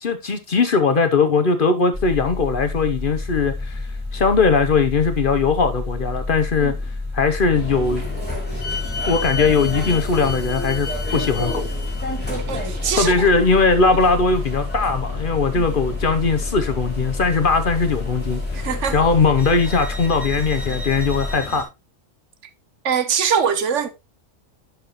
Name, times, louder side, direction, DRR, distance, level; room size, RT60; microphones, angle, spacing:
voice 1, 0.0-3.8 4.1-6.7 7.1-8.0 9.1-11.7 12.9-18.4 18.9-21.7, left 4 dB, 45° left, 0.9 m, -19 dB
sound 1, 1.9-21.4, left 2 dB, 20° right, 4.1 m, -29 dB
sound 2, 7.5-21.6, left 1 dB, 5° left, 3.0 m, -32 dB
voice 2, 12.5-13.1 15.5-15.7 18.5-19.0 22.8-23.9, right 7 dB, 70° right, 1.2 m, -22 dB
11.0 x 4.9 x 3.0 m
omnidirectional pair, 1.3 m